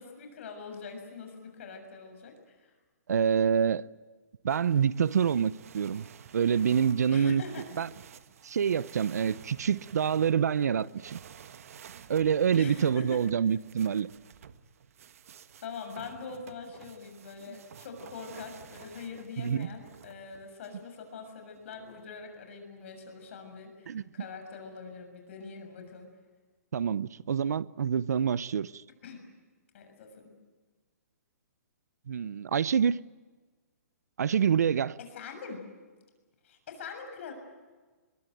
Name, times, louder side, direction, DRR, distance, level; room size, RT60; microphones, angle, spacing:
voice 1, 0.0-2.7 7.1-7.6 12.5-13.2 15.6-26.1 29.0-29.2 29.7-30.3 35.0-35.6 36.4-37.3, left 5 dB, 50° left, 6.8 m, -43 dB
voice 2, 3.1-3.9 4.4-6.1 6.3-7.4 7.8-7.9 8.4-11.2 12.1-14.1 19.4-19.7 23.9-24.0 26.7-28.8 32.1-33.0 34.2-35.0, right 7 dB, 75° right, 0.7 m, -26 dB
sound 1, 4.5-20.8 21.5-22.2, right 8 dB, 60° right, 1.4 m, -52 dB
23.0 x 22.0 x 9.2 m
hypercardioid pair, 160°, 9 cm